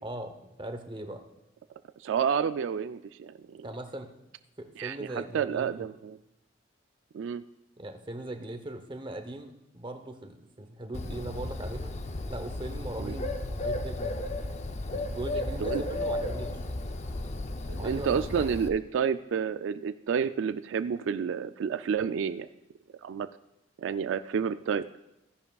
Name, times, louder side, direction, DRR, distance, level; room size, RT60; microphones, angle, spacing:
voice 1, 0.0-1.2 3.6-4.1 4.6-5.9 7.8-11.9 12.3-14.4 14.9-16.6 17.7-18.6, right 1 dB, 25° right, 6 dB, 0.8 m, -40 dB
voice 2, 2.0-3.7 4.8-6.2 7.1-7.4 13.0-13.2 15.6-15.8 17.7-22.5 23.0-23.3 23.8-24.8, right 7 dB, 80° right, 11 dB, 0.3 m, -30 dB
Bird, 10.9-18.7, left 1 dB, 35° left, 0.5 m, -34 dB
15.0 x 10.5 x 2.3 m, 0.90 s
head